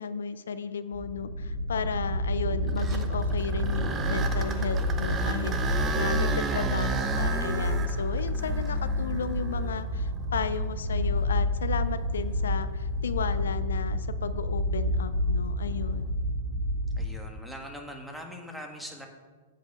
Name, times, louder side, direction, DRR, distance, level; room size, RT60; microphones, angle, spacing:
voice 1, 0.0-16.1, left 6 dB, 85° left, 12 dB, 0.5 m, -34 dB
sound 1, 0.9-17.1, left 1 dB, 80° right, 2.0 m, -29 dB
sound 2, 2.5-10.6 11.2-11.3 12.0-12.1 15.6-16.0, right 5 dB, 25° right, 0.8 m, -34 dB
voice 2, 17.0-19.1, equal, 5° right, 2 dB, 1.5 m, -41 dB
8.4 x 8.2 x 5.3 m, 1.4 s
hypercardioid pair, 130°, 0 cm